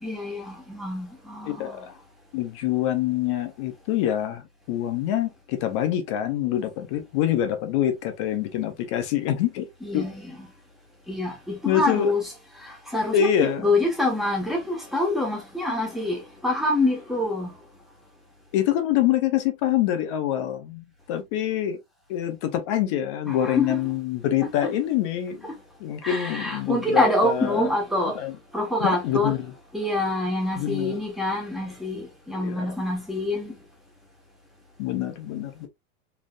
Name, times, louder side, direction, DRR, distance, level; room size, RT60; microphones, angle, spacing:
voice 1, 0.0-1.9 9.8-10.5 11.1-17.6 23.3-23.8 24.6-24.7 26.0-28.2 28.5-29.4 29.7-33.6, left 1 dB, ahead, 1.2 m, -26 dB
voice 2, 1.5-1.9 2.3-9.7 9.9-10.1 11.7-12.1 13.1-13.7 18.5-21.8 22.1-25.5 25.8-27.7 28.2-28.3 28.8-29.5 30.6-31.0 32.3-32.6 34.8-35.7, left 11 dB, 25° left, 0.3 m, -25 dB
4.2 x 3.3 x 2.3 m
supercardioid pair, 155°, 42 cm